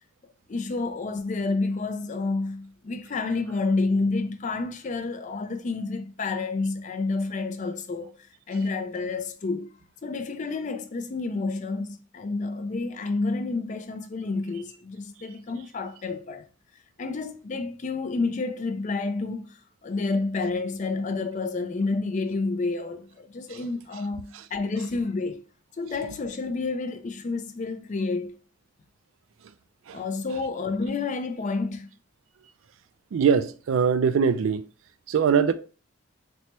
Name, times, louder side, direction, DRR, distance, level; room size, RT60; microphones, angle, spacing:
voice 1, 0.5-8.1 8.5-9.7 10.0-16.5 17.0-25.4 25.8-28.4 29.9-31.9, left 3 dB, 35° left, 0.4 m, -29 dB
voice 2, 33.1-34.6 35.1-35.5, right 6 dB, 75° right, 0.3 m, -22 dB
4.2 x 2.2 x 2.9 m
head